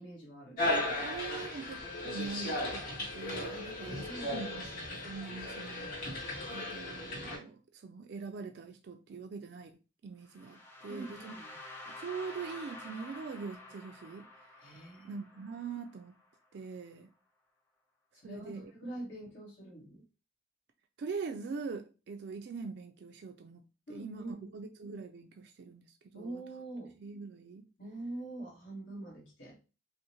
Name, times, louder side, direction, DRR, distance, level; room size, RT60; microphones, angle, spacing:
voice 1, 0.0-0.6 1.3-1.4 3.5-3.7 4.0-4.6 10.9-11.5 14.6-15.2 15.5-15.6 18.1-20.0 23.9-24.6 26.1-26.9 27.8-29.6, right 2 dB, 75° left, 1.6 m, -45 dB
voice 2, 0.5-9.7 10.0-11.3 11.9-14.5 15.0-16.2 16.5-17.1 18.2-18.7 21.0-23.6 23.9-26.4 27.0-27.7, right 5 dB, 55° right, 0.3 m, -43 dB
sound 1, 0.6-7.4, left 1 dB, 45° left, 2.0 m, -36 dB
sound 2, 10.3-16.2, left 2 dB, 10° left, 0.7 m, -49 dB
5.3 x 2.1 x 2.8 m
head